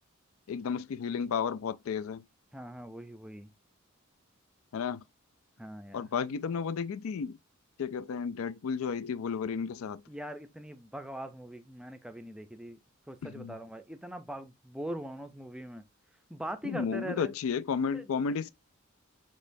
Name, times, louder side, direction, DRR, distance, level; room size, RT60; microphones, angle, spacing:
voice 1, 0.5-2.2 4.7-5.0 5.9-7.4 7.8-10.0 13.2-13.6 16.6-18.5, left 6 dB, 75° left, 0.4 m, -33 dB
voice 2, 2.5-3.5 5.6-6.1 10.1-12.8 13.1-15.8 16.3-17.3 17.9-18.0 18.3-18.4, right 1 dB, 5° right, 0.5 m, -41 dB
6.4 x 3.0 x 2.6 m
head